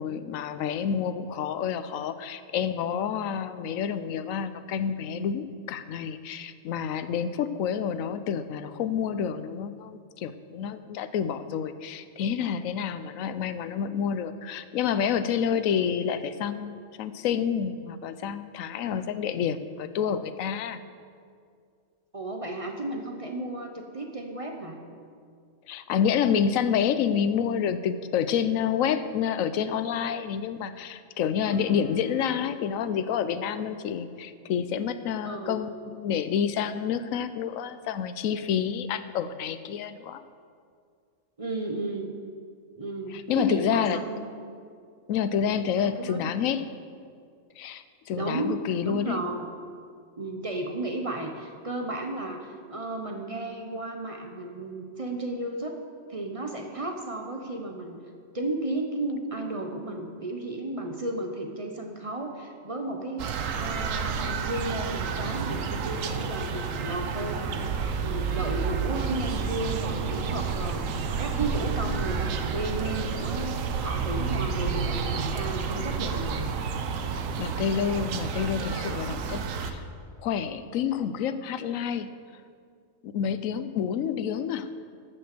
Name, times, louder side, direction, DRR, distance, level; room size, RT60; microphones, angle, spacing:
voice 1, 0.0-16.7 17.0-20.8 25.7-40.2 43.1-44.0 45.1-46.6 47.6-49.2 77.4-79.8 80.2-82.1 83.0-84.7, left 8 dB, 90° left, 12 dB, 1.0 m, -28 dB
voice 2, 22.1-24.8 35.2-35.6 41.4-42.1 42.8-44.3 45.7-46.3 48.1-49.5 50.2-55.8 56.1-58.0 58.3-63.3 63.5-76.5, right 2 dB, 30° right, 3 dB, 0.9 m, -33 dB
sound 1, 31.5-33.9, equal, 60° right, 1.9 m, -45 dB
sound 2, 63.2-79.7, right 5 dB, 80° right, 1.1 m, -30 dB
14.0 x 6.0 x 6.7 m, 2.2 s
omnidirectional pair, 1.3 m